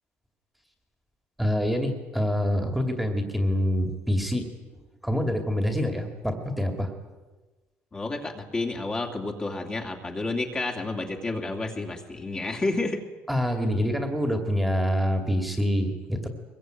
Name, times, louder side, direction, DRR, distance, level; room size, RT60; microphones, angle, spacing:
voice 1, 1.4-4.5 5.0-6.9 13.3-16.3, equal, ahead, 4 dB, 2.4 m, -26 dB
voice 2, 7.9-13.0, left 2 dB, 20° left, 2 dB, 2.5 m, -30 dB
23.5 x 22.0 x 9.3 m, 1.2 s
cardioid pair, 165°, 5 cm